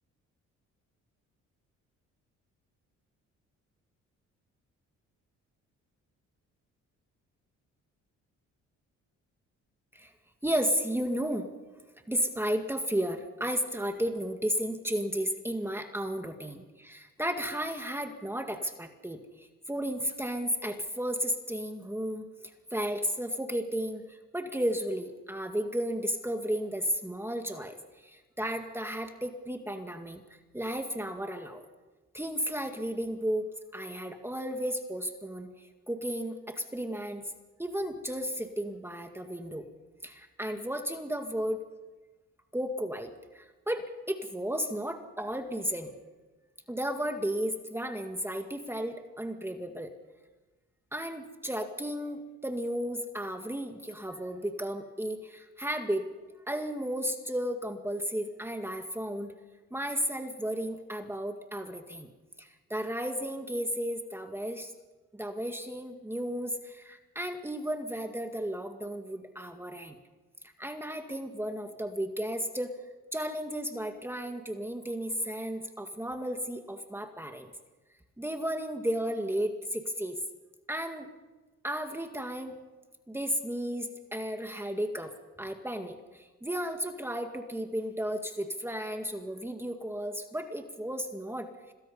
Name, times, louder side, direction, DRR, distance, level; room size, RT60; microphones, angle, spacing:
voice 1, 10.4-11.5 12.1-22.3 22.7-27.8 28.0-30.2 30.5-31.6 32.1-33.5 33.7-37.2 37.6-39.7 40.0-41.6 42.5-45.9 46.7-49.9 50.9-56.1 56.5-59.3 59.7-62.1 62.4-64.7 65.1-70.0 70.6-72.7 73.1-77.5 78.2-80.2 80.7-81.1 81.6-82.6 83.1-91.5, equal, 10° right, 5 dB, 2.1 m, -33 dB
26.5 x 19.5 x 5.6 m, 1.2 s
cardioid pair, 90°, 30 cm